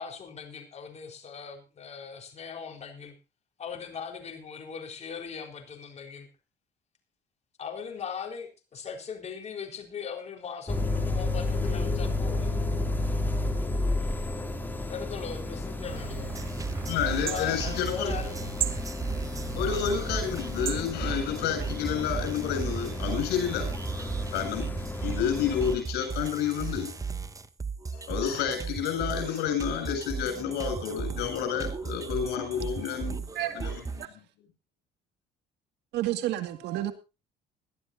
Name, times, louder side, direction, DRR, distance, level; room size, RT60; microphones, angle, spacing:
voice 1, 0.0-3.1 3.6-6.3 7.6-12.6 14.9-16.4 17.3-18.5, left 6 dB, 40° left, 4.2 m, -39 dB
sound 1, 10.7-25.8, left 2 dB, 10° left, 2.9 m, -32 dB
sound 2, 15.9-20.8, right 11 dB, 60° right, 1.8 m, -38 dB
sound 3, 16.3-34.0, right 5 dB, 20° right, 1.0 m, -36 dB
voice 2, 16.9-18.1 19.5-24.7 25.0-26.9 27.9-33.2 33.5-34.2, left 8 dB, 85° left, 7.8 m, -30 dB
voice 3, 33.4-33.7 34.0-34.1 35.9-36.9, right 13 dB, 80° right, 2.1 m, -30 dB
21.0 x 12.5 x 2.7 m
cardioid pair, 110°, 17 cm